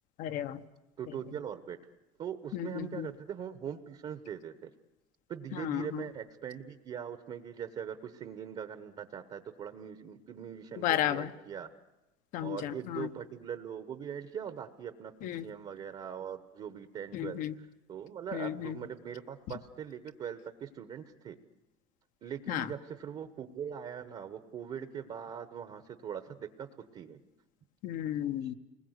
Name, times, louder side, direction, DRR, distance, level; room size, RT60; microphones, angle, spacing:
voice 1, 0.2-0.6 2.5-3.1 5.5-6.0 10.8-11.3 12.3-13.1 15.2-15.5 17.1-17.5 18.3-18.7 22.5-22.7 27.8-28.5, left 11 dB, 65° left, 10 dB, 1.0 m, -33 dB
voice 2, 1.0-1.8 2.2-4.7 5.3-11.7 12.4-21.4 22.2-26.7 26.9-27.2 28.4-28.5, right 8 dB, 45° right, 9 dB, 1.1 m, -41 dB
29.0 x 20.5 x 8.1 m, 1.0 s
cardioid pair, 130°, 15 cm